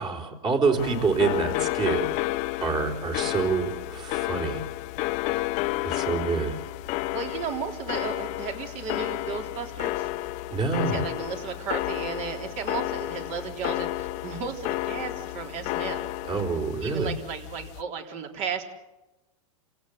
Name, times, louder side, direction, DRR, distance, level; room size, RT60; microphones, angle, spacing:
voice 1, 0.0-2.1 2.6-4.6 5.8-6.6 10.5-11.0 16.2-17.1, right 4 dB, 25° right, 4 dB, 4.1 m, -26 dB
sound 1, 0.8-17.8, left 17 dB, 40° left, 0.8 m, -31 dB
voice 2, 7.1-10.1 10.8-16.1 16.8-18.6, right 6 dB, 40° right, 4 dB, 3.8 m, -34 dB
28.5 x 17.0 x 8.0 m, 1.0 s
hypercardioid pair, 130°, 18 cm